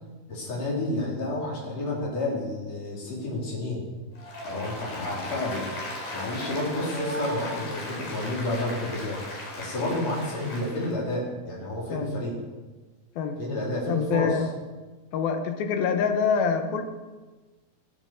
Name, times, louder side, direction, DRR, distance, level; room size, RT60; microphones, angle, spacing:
voice 1, 0.3-3.8 4.4-5.6 6.1-9.2 9.6-12.3 13.4-14.4, left 1 dB, 45° left, -4 dB, 5.4 m, -30 dB
Applause, 4.1-10.9, left 1 dB, 60° left, 5.5 m, -36 dB
voice 2, 13.9-14.5 15.1-16.8, left 6 dB, 85° left, 6 dB, 3.1 m, -25 dB
23.5 x 7.9 x 7.0 m, 1.2 s
omnidirectional pair, 4.2 m